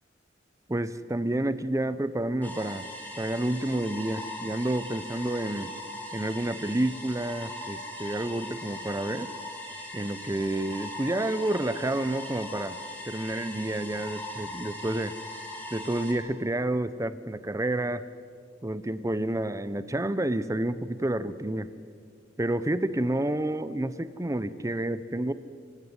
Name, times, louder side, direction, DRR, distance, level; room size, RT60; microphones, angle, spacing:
voice 1, 0.7-2.9 3.2-5.7 6.1-9.3 9.9-12.8 13.1-15.1 15.7-18.0 18.6-21.7 22.4-25.3, right 1 dB, 15° right, 14 dB, 0.6 m, -29 dB
sound 1, 2.4-16.1, left 1 dB, 10° left, 3.7 m, -40 dB
26.0 x 16.5 x 9.6 m, 2.2 s
head